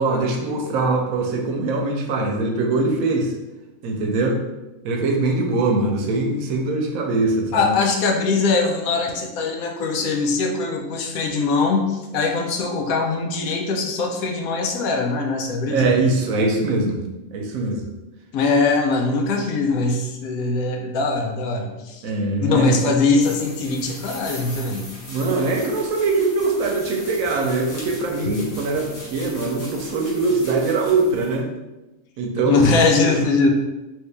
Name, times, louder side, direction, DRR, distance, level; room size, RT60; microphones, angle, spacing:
voice 1, 0.0-3.3 3.8-4.4 4.8-7.7 15.7-17.0 17.3-17.8 22.0-22.8 25.1-31.5 32.2-32.6 33.0-33.1, right 3 dB, 80° right, 1 dB, 1.0 m, -22 dB
voice 2, 7.5-15.9 18.3-22.0 22.4-24.9 32.5-33.5, left 3 dB, 80° left, 2 dB, 1.0 m, -21 dB
sound 1, 23.2-31.4, left 1 dB, 40° left, 0.8 m, -39 dB
3.1 x 2.7 x 3.2 m, 1.1 s
omnidirectional pair, 1.5 m